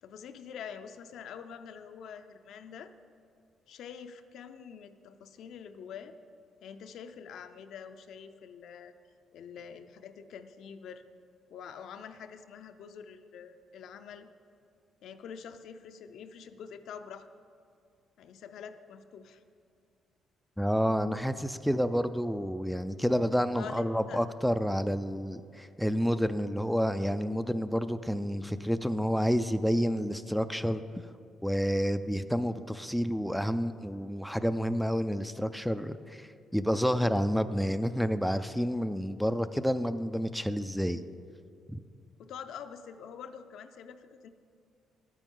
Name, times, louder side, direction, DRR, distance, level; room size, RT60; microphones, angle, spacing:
voice 1, 0.0-2.9 3.7-6.1 6.6-8.9 9.3-11.0 11.5-14.3 15.0-17.3 18.2-19.4 23.5-24.2 42.2-44.3, left 7 dB, 75° left, 9 dB, 0.5 m, -46 dB
voice 2, 20.6-30.8 31.4-41.0 41.7-41.8, equal, ahead, 10 dB, 0.3 m, -29 dB
12.0 x 9.1 x 3.8 m, 2.3 s
cardioid pair, 100°, 0 cm